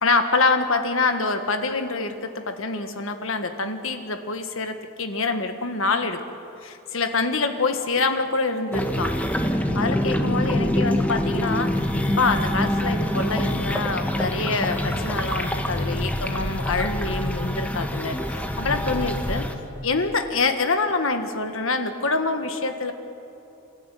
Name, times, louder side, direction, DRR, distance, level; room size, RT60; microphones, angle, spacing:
voice 1, 0.0-6.4 6.6-9.1 9.7-11.9 12.2-19.5 19.8-22.9, left 3 dB, 65° left, 7 dB, 1.7 m, -25 dB
sound 1, 8.7-19.5, left 1 dB, 5° left, 1.2 m, -25 dB
28.5 x 13.0 x 9.3 m, 3.0 s
head